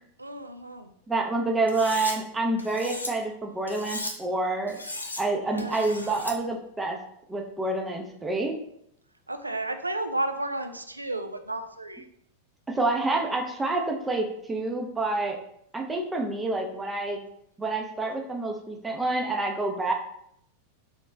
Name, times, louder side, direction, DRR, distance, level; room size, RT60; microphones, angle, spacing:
voice 1, 0.2-0.9 5.5-5.9 9.3-12.1, right 2 dB, 85° right, 8 dB, 0.3 m, -32 dB
voice 2, 1.1-4.8 5.2-7.0 7.3-8.6 12.7-15.4 15.7-17.3 17.6-19.9, right 2 dB, 10° right, 2 dB, 0.6 m, -28 dB
Cutlery silverware, 1.7-2.1 2.6-3.1 3.7-4.1 4.7-5.2 5.6-6.3, left 2 dB, 80° left, 0.5 m, -36 dB
3.2 x 3.2 x 3.1 m, 0.73 s
figure-of-eight pair, 90°, 0 cm